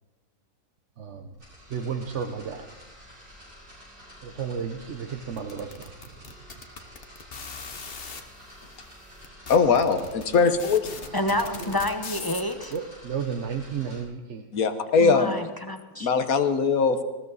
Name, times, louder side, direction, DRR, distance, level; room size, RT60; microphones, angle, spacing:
voice 1, 1.0-1.3 1.7-2.7 4.2-5.9 9.7-10.0 11.0-11.8 12.7-14.4, right 6 dB, 50° right, 4 dB, 1.1 m, -33 dB
sound 1, 1.3-14.0, equal, 90° right, 7.5 m, -49 dB
sound 2, 5.4-8.2 8.9-9.0 9.2-12.8, left 5 dB, 40° left, 1.1 m, -39 dB
voice 2, 9.5-10.8 14.5-15.4 16.0-17.0, left 5 dB, 65° left, 8 dB, 1.5 m, -21 dB
voice 3, 11.1-12.7 15.0-16.1, left 1 dB, 20° left, 6 dB, 0.8 m, -28 dB
19.5 x 16.0 x 4.1 m, 1.2 s
omnidirectional pair, 1.6 m